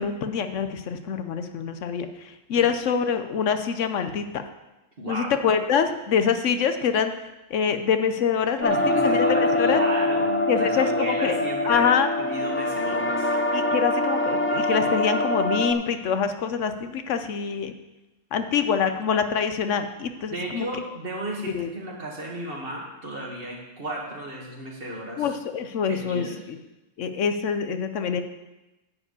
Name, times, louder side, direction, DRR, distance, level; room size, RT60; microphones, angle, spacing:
voice 1, 0.0-4.4 5.1-7.1 7.5-9.3 9.6-9.8 10.5-12.1 12.9-13.0 13.5-17.7 18.3-20.7 21.5-21.7 25.2-26.6 27.0-28.2, left 7 dB, 75° left, 8 dB, 1.1 m, -25 dB
voice 2, 5.0-5.3 8.7-11.9 12.2-13.3 20.3-25.3 25.9-26.4, right 1 dB, 45° right, -2 dB, 2.2 m, -34 dB
sound 1, 8.6-15.7, left 1 dB, 15° left, 0.4 m, -24 dB
10.5 x 4.8 x 8.2 m, 1.0 s
omnidirectional pair, 1.3 m